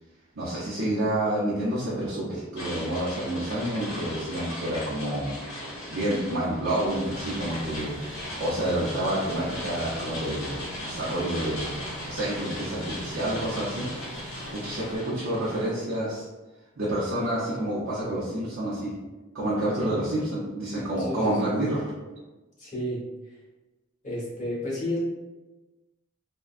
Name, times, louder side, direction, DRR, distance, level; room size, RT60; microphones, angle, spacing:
voice 1, 0.4-5.4 5.9-8.0 8.4-16.3 16.8-18.9 19.3-21.9, right 1 dB, 65° right, -9 dB, 0.7 m, -29 dB
sound 1, 2.6-15.7, left 1 dB, 70° left, 1.2 m, -38 dB
sound 2, 6.9-15.0, left 1 dB, 90° right, 1.1 m, -42 dB
voice 2, 21.0-21.5 22.6-23.4 24.0-25.0, left 1 dB, 40° left, -6 dB, 1.1 m, -32 dB
3.4 x 2.2 x 2.5 m, 1.1 s
head